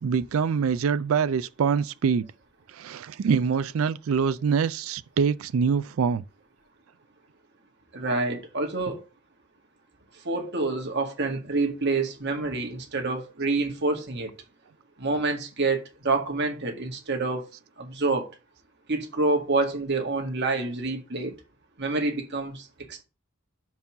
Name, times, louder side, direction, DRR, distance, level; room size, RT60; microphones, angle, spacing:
voice 1, 0.0-2.3 2.7-6.2, right 6 dB, 70° right, 0.4 m, -25 dB
voice 2, 7.9-9.0 10.3-14.3 15.0-17.4 17.8-18.3 18.9-21.3 21.8-23.0, right 3 dB, 55° right, 1.9 m, -27 dB
5.4 x 4.7 x 6.2 m
head